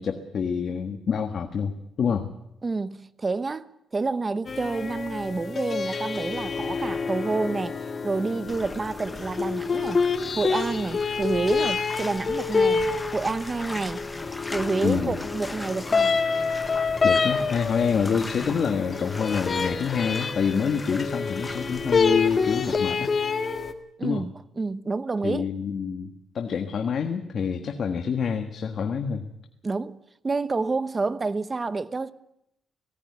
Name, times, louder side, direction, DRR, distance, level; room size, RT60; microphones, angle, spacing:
voice 1, 0.0-2.3 14.8-15.2 17.0-23.1 24.0-24.2 25.2-29.3, left 6 dB, 50° left, 1.5 m, -27 dB
voice 2, 2.6-10.0 10.4-14.1 14.5-16.1 24.0-25.5 29.6-30.0 30.2-32.1, right 3 dB, 25° right, 0.9 m, -29 dB
sound 1, 4.5-23.7, left 5 dB, 35° left, 1.9 m, -27 dB
Bathtub (filling or washing), 8.5-22.8, left 2 dB, 15° left, 1.0 m, -40 dB
18.5 x 17.0 x 9.5 m
cardioid pair, 125°, 0 cm